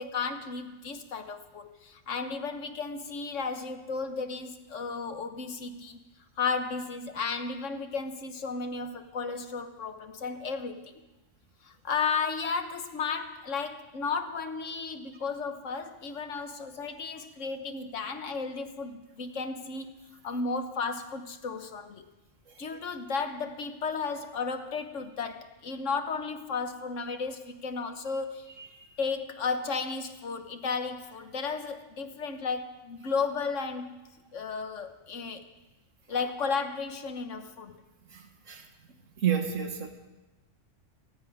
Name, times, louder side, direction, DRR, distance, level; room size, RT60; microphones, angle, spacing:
voice 1, 0.0-6.0 6.4-11.0 11.6-20.0 20.2-22.1 22.6-28.5 29.0-34.0 34.3-35.5 36.1-37.8, left 5 dB, 75° left, 8 dB, 1.5 m, -34 dB
voice 2, 38.1-38.6 39.2-39.9, right 9 dB, 90° right, 5 dB, 1.8 m, -30 dB
15.5 x 9.5 x 9.3 m, 1.1 s
omnidirectional pair, 1.3 m